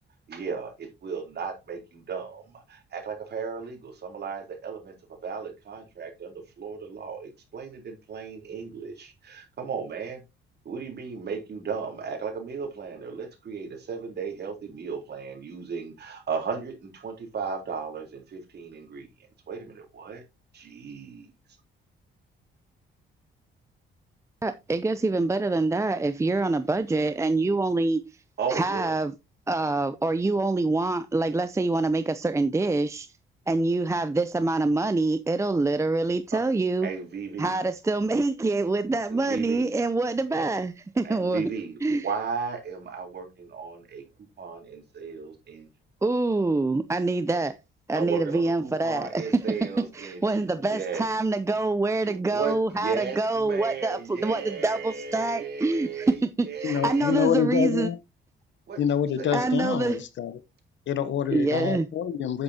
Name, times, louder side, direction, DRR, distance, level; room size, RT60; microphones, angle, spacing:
voice 1, 0.3-4.9 5.2-10.2 10.7-19.1 19.5-20.2 20.5-21.3 28.4-29.0 36.3-36.4 36.8-37.5 39.1-39.7 40.3-40.5 41.0-45.7 47.9-51.0 52.0-57.3 58.7-59.3, right 5 dB, 55° right, 3.7 m, -35 dB
voice 2, 24.4-28.0 28.5-29.1 29.5-33.1 33.5-36.9 37.4-41.5 41.8-42.1 46.0-47.6 47.9-57.9 59.3-60.1 61.3-61.9, right 2 dB, 15° right, 0.6 m, -25 dB
voice 3, 56.6-58.0 58.8-60.4 60.9-62.4, left 9 dB, 70° left, 1.1 m, -26 dB
9.8 x 8.1 x 2.8 m
cardioid pair, 90°, 20 cm